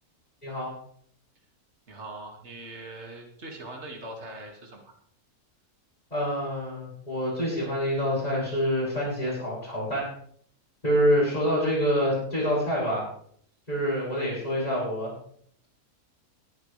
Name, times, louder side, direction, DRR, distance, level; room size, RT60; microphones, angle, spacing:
voice 1, 1.9-4.9, right 2 dB, 45° right, 0 dB, 2.6 m, -41 dB
voice 2, 6.1-10.1 10.8-13.1 13.7-15.2, equal, 25° left, -10 dB, 6.8 m, -26 dB
21.0 x 11.5 x 3.4 m, 0.63 s
omnidirectional pair, 1.6 m